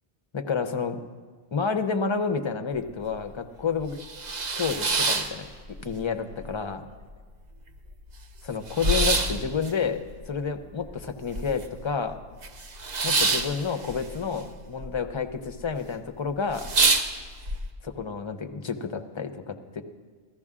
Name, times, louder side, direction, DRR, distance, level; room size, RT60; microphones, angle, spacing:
voice 1, 0.3-1.0 1.5-4.0 4.6-5.5 5.8-6.8 8.4-12.2 13.0-16.7 17.8-19.8, left 5 dB, 35° left, 8 dB, 0.6 m, -30 dB
sound 1, 2.8-2.9 3.3-3.4 3.8-6.0 6.3-7.0 7.4-7.5 7.7-11.8 12.1-14.9 15.2-15.7 16.1-16.2 16.5-17.6, right 3 dB, 45° right, 0.8 m, -27 dB
16.0 x 13.5 x 3.6 m, 1.5 s
omnidirectional pair, 1.1 m